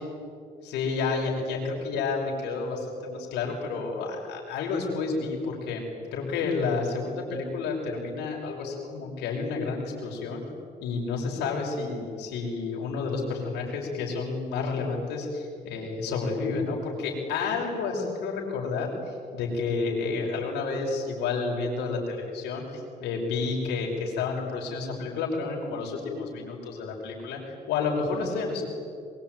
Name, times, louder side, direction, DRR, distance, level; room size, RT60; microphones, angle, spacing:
voice 1, 0.6-10.4 10.8-28.6, left 4 dB, 85° left, -1 dB, 5.8 m, -30 dB
25.5 x 23.0 x 9.3 m, 2.4 s
cardioid pair, 110°, 17 cm